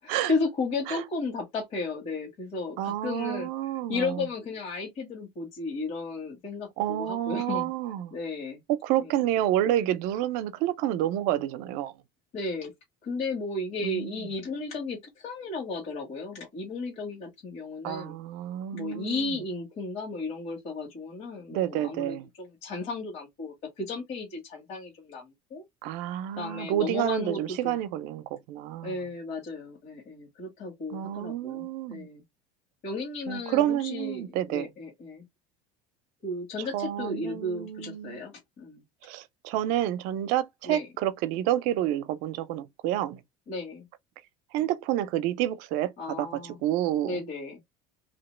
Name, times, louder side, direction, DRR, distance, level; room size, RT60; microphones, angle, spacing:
voice 1, 0.0-3.5 3.9-7.7 8.1-8.6 9.0-9.2 12.3-12.7 13.0-18.1 18.7-25.6 26.4-27.8 28.8-32.2 32.8-35.2 36.2-38.8 40.6-40.9 43.5-43.9 46.0-46.6 47.0-47.6, left 3 dB, 50° left, 1.5 m, -34 dB
voice 2, 2.8-4.2 6.8-8.1 8.7-11.9 13.8-14.3 17.8-19.4 21.5-22.3 25.8-29.0 30.9-32.1 33.3-34.7 36.6-38.2 39.0-43.2 44.5-47.2, right 12 dB, 70° right, 0.5 m, -29 dB
2.9 x 2.7 x 3.1 m
cardioid pair, 135°, 14 cm